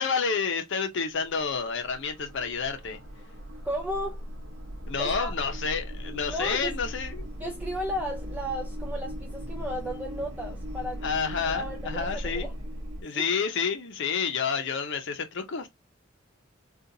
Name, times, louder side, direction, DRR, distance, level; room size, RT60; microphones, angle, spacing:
voice 1, 0.0-3.0 4.9-7.2 11.0-12.5 13.0-15.7, left 5 dB, 60° left, 0.7 m, -29 dB
sound 1, 1.1-13.0, equal, 70° right, 0.9 m, -38 dB
voice 2, 3.6-4.2 5.0-5.3 6.3-6.7 7.4-11.0 11.4-12.5 13.1-13.2, equal, 10° right, 0.4 m, -34 dB
3.8 x 2.4 x 2.7 m
head